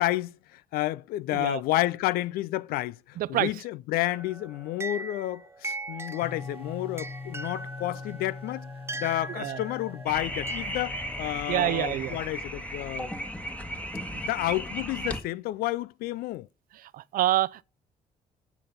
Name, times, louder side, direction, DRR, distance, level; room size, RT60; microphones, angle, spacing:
voice 1, 0.0-8.7 8.9-13.1 14.2-16.5, left 16 dB, 80° left, 0.5 m, -30 dB
voice 2, 1.3-1.6 3.2-3.5 9.3-9.6 11.5-12.2 16.8-17.6, right 14 dB, 70° right, 0.5 m, -27 dB
sound 1, 4.0-11.3, right 3 dB, 15° right, 0.5 m, -40 dB
sound 2, 6.2-13.0, left 4 dB, 40° left, 0.8 m, -43 dB
sound 3, 10.1-15.2, equal, 10° left, 1.7 m, -35 dB
9.9 x 7.0 x 5.3 m
supercardioid pair, 70°, 15 cm